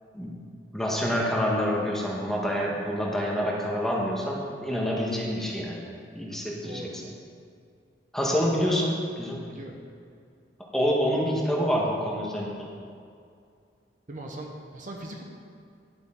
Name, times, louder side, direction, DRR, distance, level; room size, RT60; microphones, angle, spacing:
voice 1, 0.7-5.9 6.1-7.0 8.1-8.9 9.2-9.5 10.7-12.7, equal, ahead, -3 dB, 1.3 m, -27 dB
voice 2, 6.6-6.9 8.6-8.9 9.5-9.8 14.1-15.2, right 1 dB, 45° right, 1 dB, 1.0 m, -39 dB
11.0 x 8.4 x 3.8 m, 2.3 s
head